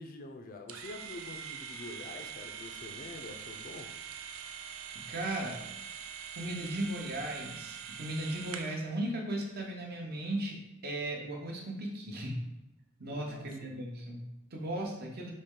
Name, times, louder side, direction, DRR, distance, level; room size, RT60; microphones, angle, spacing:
voice 1, 0.0-3.9 13.1-13.8, left 2 dB, 45° left, 5 dB, 0.4 m, -46 dB
sound 1, 0.7-8.9, right 7 dB, 80° right, 0.4 m, -44 dB
voice 2, 5.1-5.6 6.4-10.6 10.8-12.4 13.0-15.3, right 1 dB, 50° right, 0 dB, 0.8 m, -36 dB
4.1 x 3.1 x 3.7 m, 0.97 s
head